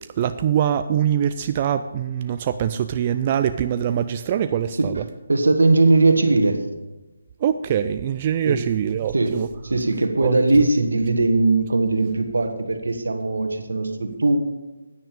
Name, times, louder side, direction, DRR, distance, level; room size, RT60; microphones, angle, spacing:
voice 1, 0.2-5.0 7.4-9.5 10.2-10.3, right 9 dB, 30° right, 10 dB, 0.4 m, -23 dB
voice 2, 5.3-6.6 8.5-8.6 9.1-9.3 9.6-14.4, right 3 dB, 75° right, 7 dB, 1.5 m, -19 dB
10.0 x 9.5 x 5.2 m, 1.1 s
figure-of-eight pair, 150°, 0 cm